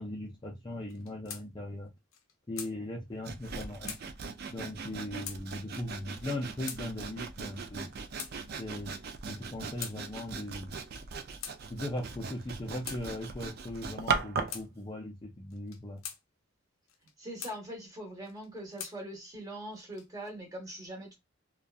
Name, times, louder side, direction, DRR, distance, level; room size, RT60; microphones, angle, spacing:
voice 1, 0.0-1.9 2.5-3.9 4.5-7.9 8.6-8.9 9.3-10.7 11.7-16.0, left 1 dB, 20° left, 0.4 m, -39 dB
sound 1, 0.9-1.4 1.8-1.9 2.1-2.7 3.4-3.6 3.8-4.0 4.8-5.0 5.2-5.4 6.2-6.3 6.6-6.8 7.5-8.3 9.1-10.0 10.7-11.0 11.4-11.6 12.3-13.0 13.9-14.0 14.5-14.7 15.5-16.2 16.9-17.6 18.2-19.0 19.7-20.3, left 8 dB, 70° left, 0.5 m, -43 dB
Sawing, 3.2-14.6, right 5 dB, 45° right, 0.3 m, -39 dB
voice 2, 17.2-21.1, right 1 dB, 15° right, 0.9 m, -42 dB
2.6 x 2.2 x 2.3 m
head